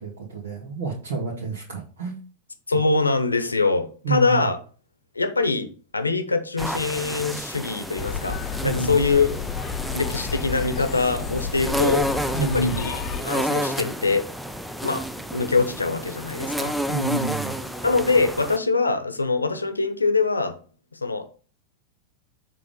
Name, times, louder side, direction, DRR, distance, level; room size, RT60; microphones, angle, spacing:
voice 1, 0.0-2.2 4.0-4.4 8.6-9.0 12.3-12.8 16.9-17.6, right 3 dB, 65° right, 1.9 m, -28 dB
voice 2, 2.7-4.6 5.1-5.7 5.9-9.3 9.9-12.1 12.4-12.9 13.2-14.2 14.8-15.0 15.3-16.8 17.8-20.6 20.9-21.3, left 3 dB, 80° left, 0.9 m, -23 dB
sound 1, 6.6-18.6, equal, ahead, 0.5 m, -31 dB
sound 2, 8.0-13.2, left 6 dB, 25° left, 0.8 m, -31 dB
6.9 x 3.5 x 5.2 m
figure-of-eight pair, 90°, 0 cm